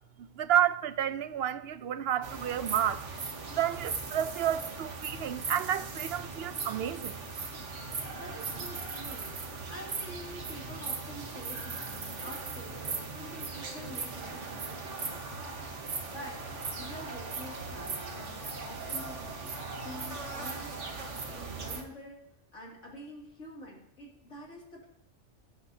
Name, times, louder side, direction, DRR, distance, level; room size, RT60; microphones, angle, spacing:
voice 1, 0.4-3.0 3.5-7.2, right 10 dB, 65° right, 0.7 m, -30 dB
sound 1, 2.2-21.8, right 4 dB, 80° right, 1.6 m, -39 dB
voice 2, 8.1-9.3 9.7-15.6 16.1-22.2 22.5-24.9, equal, 90° left, 2.9 m, -47 dB
18.0 x 8.8 x 2.8 m
omnidirectional pair, 1.2 m